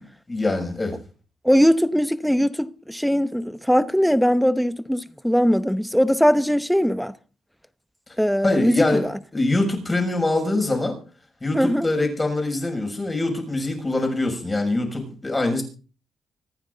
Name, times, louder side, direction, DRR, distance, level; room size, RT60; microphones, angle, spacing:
voice 1, 0.3-0.9 8.4-11.0 11.4-15.6, left 2 dB, 20° left, 6.4 m, -24 dB
voice 2, 1.4-7.1 8.2-9.1 11.5-11.9, equal, ahead, 0.9 m, -20 dB
25.5 x 9.5 x 4.0 m
cardioid pair, 95°, 0 cm